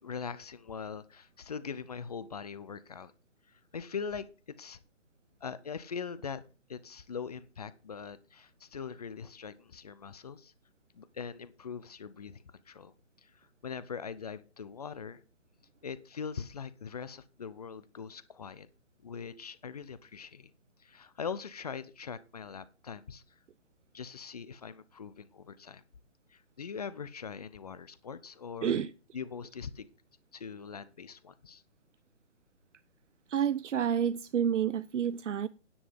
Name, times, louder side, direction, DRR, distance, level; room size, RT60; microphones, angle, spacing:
voice 1, 0.0-3.1 3.5-4.3 4.6-4.8 5.4-6.4 6.7-10.5 10.9-12.9 13.2-15.2 15.8-18.7 19.0-20.5 20.8-23.2 23.9-25.8 26.3-28.9 29.1-29.9 30.3-31.6, left 6 dB, 35° left, 0.6 m, -42 dB
voice 2, 28.6-28.9 33.3-35.5, right 8 dB, 80° right, 0.6 m, -29 dB
9.9 x 7.6 x 5.1 m
hypercardioid pair, 155°, 36 cm